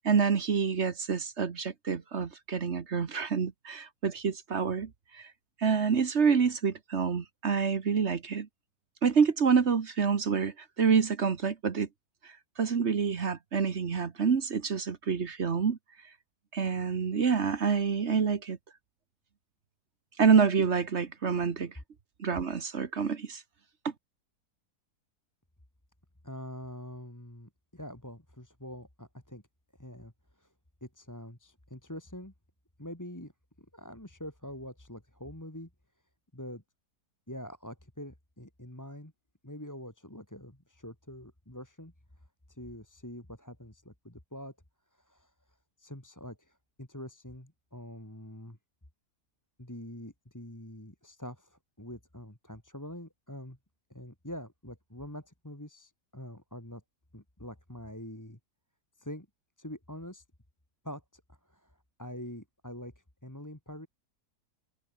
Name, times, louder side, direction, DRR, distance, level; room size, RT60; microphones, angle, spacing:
voice 1, 0.0-4.9 5.6-8.5 9.0-11.9 12.6-15.8 16.5-18.6 20.2-21.7 22.2-23.4, right 6 dB, 45° right, 1.4 m, -27 dB
voice 2, 26.2-29.4 29.8-30.1 30.4-30.5 30.8-32.3 32.8-33.3 33.6-35.7 36.3-36.6 37.3-39.1 39.4-41.9 42.5-44.5 44.9-45.3 45.8-48.6 49.6-53.6 53.9-56.8 57.1-58.4 59.0-59.3 59.6-60.2 60.8-62.9 63.2-63.9, left 1 dB, 10° left, 3.1 m, -45 dB
omnidirectional pair, 1.7 m